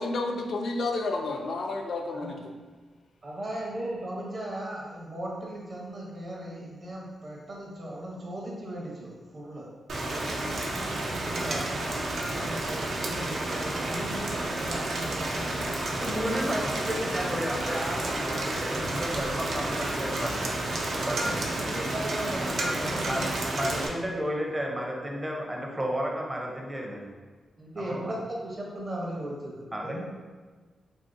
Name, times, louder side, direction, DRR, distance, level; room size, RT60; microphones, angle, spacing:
voice 1, 0.0-2.5, left 2 dB, 70° left, 2 dB, 0.3 m, -31 dB
voice 2, 3.2-9.7 9.9-15.8 16.3-16.5 21.2-23.3 27.6-30.0, right 1 dB, 50° right, -3 dB, 0.9 m, -38 dB
Rain, 9.9-23.9, right 1 dB, 70° right, 0.4 m, -31 dB
voice 3, 16.0-20.5 20.9-21.4 22.8-23.2 23.5-27.1 27.8-28.1 29.7-30.0, equal, 15° right, -1 dB, 0.6 m, -32 dB
3.0 x 2.7 x 2.6 m, 1.4 s
cardioid pair, 75°, 0 cm